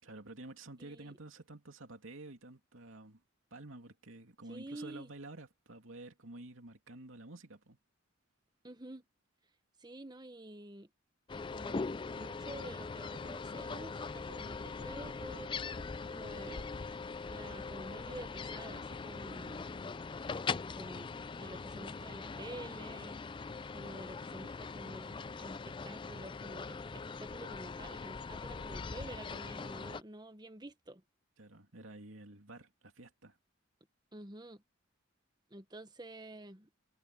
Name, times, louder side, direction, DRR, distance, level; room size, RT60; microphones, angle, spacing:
voice 1, 0.0-3.2 3.5-7.8 31.4-33.4, right 2 dB, 80° right, 2.8 m, -50 dB
voice 2, 0.8-1.2 4.5-5.1 8.6-9.0 9.8-10.9 11.4-15.5 16.0-16.7 17.3-19.9 20.8-23.2 23.7-31.0 34.1-34.6 35.5-36.7, right 1 dB, 20° right, 1.3 m, -49 dB
sound 1, 11.3-30.0, left 4 dB, 25° left, 0.4 m, -41 dB
head